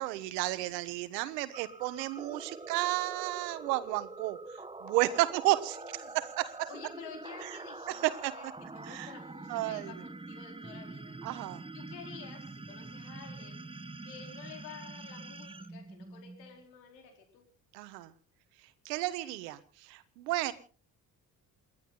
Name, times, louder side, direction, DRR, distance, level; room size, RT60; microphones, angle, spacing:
voice 1, 0.0-4.4 4.8-6.7 7.9-8.3 8.9-9.1 9.5-9.9 11.2-11.6 17.7-18.1 18.8-19.6 19.9-20.5, right 17 dB, 80° right, 14 dB, 1.5 m, -32 dB
sound 1, 1.5-16.6, right 3 dB, 10° right, 1.1 m, -45 dB
voice 2, 5.3-6.2 6.7-11.2 11.7-13.6 14.0-17.4, left 7 dB, 85° left, 3 dB, 4.5 m, -51 dB
28.5 x 11.5 x 4.0 m, 0.39 s
hypercardioid pair, 55°, 48 cm